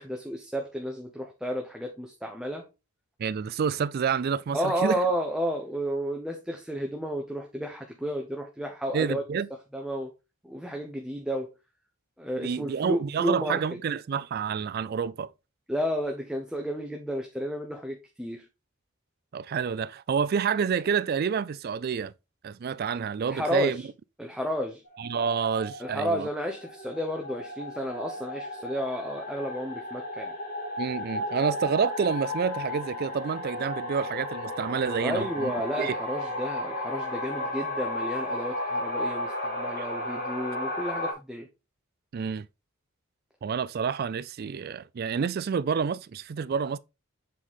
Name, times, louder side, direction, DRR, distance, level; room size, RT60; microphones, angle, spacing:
voice 1, 0.0-2.7 4.5-9.2 9.7-10.1 10.4-11.5 12.2-13.6 15.7-18.4 23.2-23.8 24.2-24.8 25.8-30.3 35.0-41.5, equal, 5° right, 0.7 m, -32 dB
voice 2, 3.2-5.0 8.9-9.5 12.4-15.3 19.3-22.1 22.4-23.8 25.0-26.3 30.8-36.0 39.8-39.9 42.1-42.5 43.4-46.8, right 6 dB, 45° right, 0.3 m, -28 dB
sound 1, 24.9-41.1, left 1 dB, 40° left, 2.3 m, -34 dB
7.5 x 4.1 x 3.6 m
head